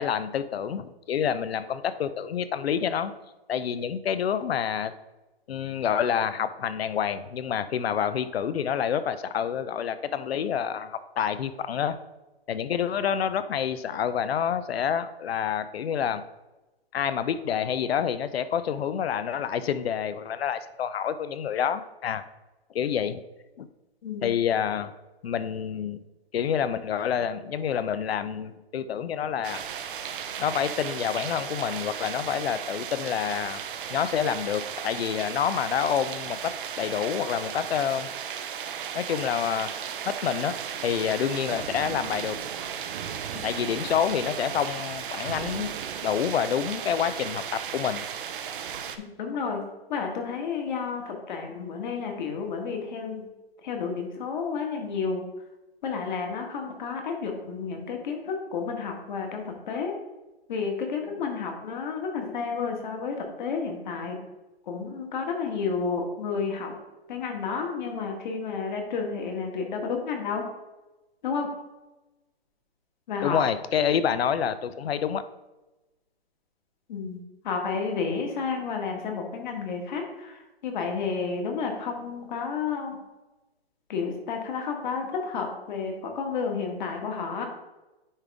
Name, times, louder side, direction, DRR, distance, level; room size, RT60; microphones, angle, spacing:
voice 1, 0.0-3.1 3.5-4.9 5.5-11.9 12.5-16.2 16.9-22.2 22.7-23.2 23.6-23.7 24.2-24.9 25.2-26.0 26.3-29.6 30.4-33.6 33.9-38.1 38.9-39.7 40.1-40.5 40.8-42.4 43.4-45.7 46.0-48.0 73.2-75.2, left 8 dB, 75° left, 13 dB, 0.6 m, -28 dB
sound 1, 29.4-49.0, right 8 dB, 55° right, 0.6 m, -35 dB
voice 2, 49.0-49.6 49.9-53.2 53.6-55.2 55.8-59.9 60.5-64.2 64.7-66.8 67.1-70.4 71.2-71.5 73.1-73.4 76.9-80.4 80.6-83.0 83.9-87.4, left 5 dB, 50° left, 2 dB, 1.7 m, -31 dB
9.7 x 3.6 x 3.5 m, 1.0 s
hypercardioid pair, 145°, 31 cm